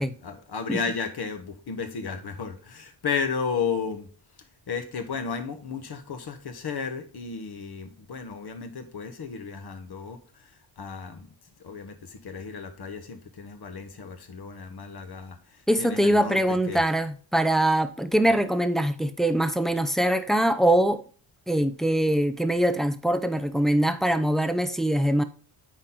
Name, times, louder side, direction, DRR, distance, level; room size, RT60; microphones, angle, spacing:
voice 1, 0.0-4.1 4.7-10.5 10.8-11.3 11.6-16.8, left 5 dB, 50° left, 1.3 m, -33 dB
voice 2, 15.7-21.0 21.5-25.2, right 1 dB, ahead, 0.6 m, -23 dB
8.7 x 4.3 x 3.8 m
cardioid pair, 80°, 49 cm